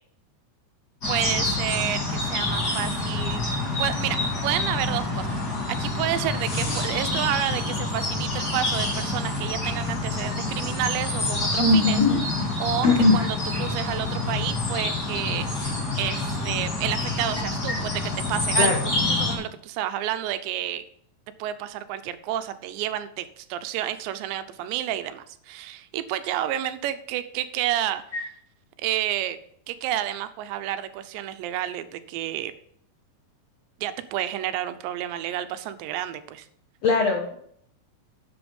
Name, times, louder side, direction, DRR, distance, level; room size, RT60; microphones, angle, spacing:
sound 1, 1.0-19.3, left 2 dB, 25° left, 3.1 m, -27 dB
voice 1, 1.1-3.5 3.8-5.4 5.7-12.0 12.6-12.9 13.1-13.3 13.6-15.5 16.0-17.9 18.3-20.9 21.4-28.0 28.8-29.4 29.7-32.5 33.8-36.5, right 12 dB, 85° right, 11 dB, 3.0 m, -30 dB
voice 2, 11.6-12.4 12.8-13.3 17.7-17.8 18.6-18.7 28.1-28.2 36.8-37.3, left 3 dB, 85° left, 2 dB, 1.4 m, -20 dB
10.5 x 7.8 x 5.3 m, 0.66 s
omnidirectional pair, 5.0 m